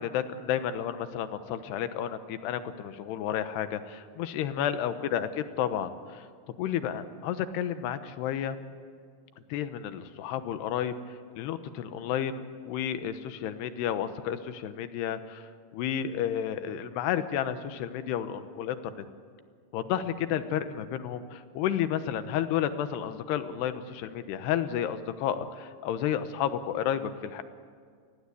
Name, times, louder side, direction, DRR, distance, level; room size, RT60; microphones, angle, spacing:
voice 1, 0.0-6.2 6.6-8.6 9.5-10.9 11.4-15.5 15.7-19.0 19.7-27.4, left 9 dB, 85° left, 10 dB, 3.2 m, -31 dB
29.5 x 20.5 x 8.4 m, 2.1 s
omnidirectional pair, 4.6 m